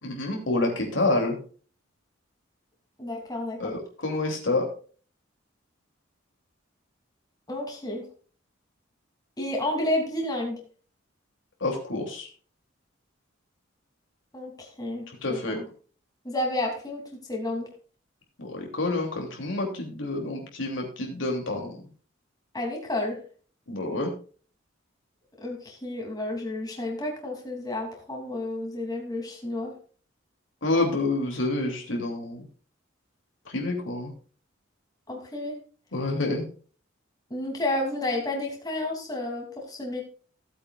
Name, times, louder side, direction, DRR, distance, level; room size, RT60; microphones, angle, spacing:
voice 1, 0.0-1.4 3.6-4.7 11.6-12.3 15.2-15.6 18.4-21.7 23.7-24.1 30.6-32.4 33.5-34.1 35.9-36.5, left 2 dB, 70° left, 1 dB, 3.0 m, -28 dB
voice 2, 3.0-3.6 7.5-8.0 9.4-10.6 14.3-15.6 16.2-17.0 17.3-17.7 22.5-23.2 25.4-29.7 35.1-35.5 37.3-40.0, left 1 dB, 20° left, 0 dB, 3.0 m, -31 dB
16.0 x 8.7 x 2.5 m, 0.40 s
head